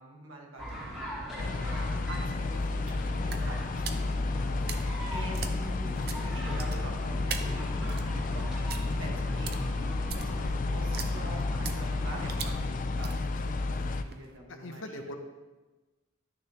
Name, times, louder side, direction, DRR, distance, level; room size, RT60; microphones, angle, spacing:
voice 1, 0.0-1.7 2.1-3.8 4.1-8.5 9.0-15.0, right 1 dB, 80° right, 0 dB, 1.5 m, -46 dB
sound 1, 0.6-12.5, equal, 5° right, 2.7 m, -41 dB
sound 2, 1.3-14.4, right 6 dB, 50° right, 0.6 m, -44 dB
sound 3, 1.4-14.0, left 3 dB, 40° left, 0.3 m, -31 dB
voice 2, 14.5-15.2, left 1 dB, 70° left, 6 dB, 0.9 m, -40 dB
11.5 x 6.6 x 2.9 m, 1.2 s
head